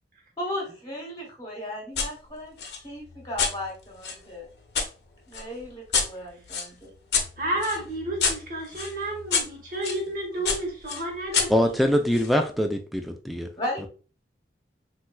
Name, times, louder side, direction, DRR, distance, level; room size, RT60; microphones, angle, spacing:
voice 1, 0.4-2.5 2.8-4.4 5.3-6.9 13.6-13.9, left 1 dB, 20° left, -1 dB, 1.0 m, -35 dB
sound 1, 2.0-2.1 2.6-4.9 5.3-10.0 10.5-12.3, left 5 dB, 70° left, 0.6 m, -29 dB
voice 2, 7.4-11.9, right 1 dB, 50° right, 0 dB, 1.1 m, -31 dB
voice 3, 11.5-13.5, equal, ahead, 4 dB, 0.3 m, -23 dB
4.1 x 2.3 x 2.2 m, 0.36 s
head